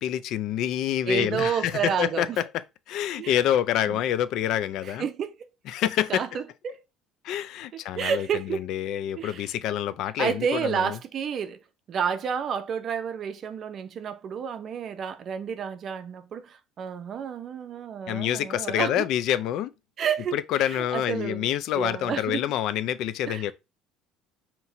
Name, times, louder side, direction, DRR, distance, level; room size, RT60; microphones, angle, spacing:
voice 1, 0.0-2.4 2.9-5.1 5.7-6.4 7.2-11.0 18.1-19.7 20.3-23.5, left 11 dB, 60° left, 0.4 m, -27 dB
voice 2, 1.0-2.4 3.2-3.4 3.9-4.0 4.8-5.3 6.1-6.8 7.9-8.6 9.2-9.5 10.2-11.6 11.9-19.1 20.0-22.4 23.3-23.5, right 7 dB, 40° right, 0.5 m, -30 dB
5.7 x 2.9 x 2.7 m
cardioid pair, 135°, 0 cm